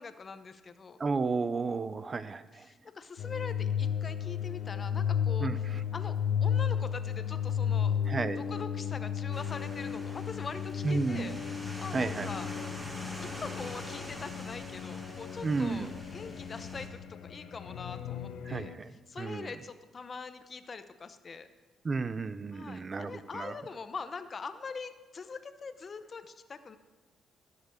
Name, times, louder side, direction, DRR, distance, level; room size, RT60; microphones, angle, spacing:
voice 1, 0.0-1.0 2.5-5.7 5.9-6.1 6.4-8.0 8.3-12.9 13.2-21.5 22.5-26.8, left 5 dB, 40° left, 11 dB, 0.8 m, -43 dB
voice 2, 1.0-2.7 5.4-5.6 8.1-8.4 10.8-11.3 11.9-12.3 15.4-15.9 18.5-19.5 21.8-23.6, right 4 dB, 35° right, 14 dB, 0.5 m, -32 dB
sound 1, 3.2-18.8, left 8 dB, 75° left, 0.6 m, -34 dB
sound 2, 9.3-16.9, equal, 5° right, 1.9 m, -45 dB
14.0 x 6.7 x 6.4 m, 1.2 s
cardioid pair, 90°, 0 cm